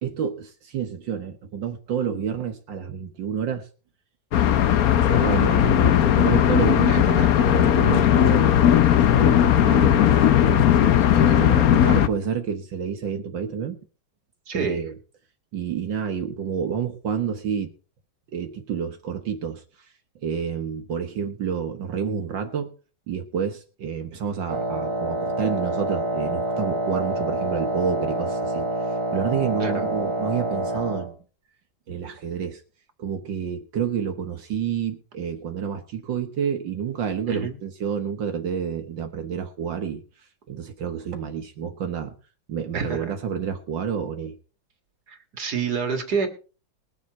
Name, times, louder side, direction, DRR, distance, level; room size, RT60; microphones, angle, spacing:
voice 1, 0.0-3.7 5.0-8.5 9.0-13.8 14.5-15.0 15.5-17.7 18.3-22.7 23.1-31.2 31.9-32.6 33.0-42.1 42.5-44.4, right 7 dB, 70° right, 6 dB, 1.8 m, -29 dB
sound 1, 4.3-12.1, left 10 dB, 60° left, 1.1 m, -17 dB
voice 2, 6.9-7.3 14.5-14.8 29.6-29.9 37.3-37.5 42.7-43.2 45.1-46.3, right 5 dB, 50° right, 5 dB, 2.5 m, -28 dB
Wind instrument woodwind instrument, 24.5-31.1, right 1 dB, 15° right, 1.6 m, -27 dB
21.5 x 7.2 x 4.2 m, 0.36 s
omnidirectional pair, 2.2 m